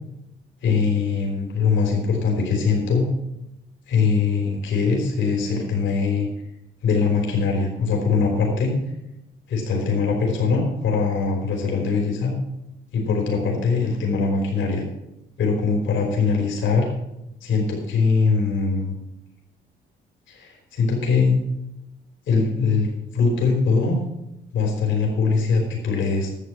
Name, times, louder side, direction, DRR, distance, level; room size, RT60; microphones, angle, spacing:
voice 1, 0.6-3.1 3.9-6.3 6.8-8.7 9.5-12.3 12.9-14.8 15.4-16.9 17.4-18.9 20.3-21.4 22.3-22.9 23.1-24.0 24.5-26.3, left 4 dB, 75° left, 1 dB, 3.6 m, -22 dB
11.5 x 7.3 x 7.4 m, 0.88 s
cardioid pair, 90°, 20 cm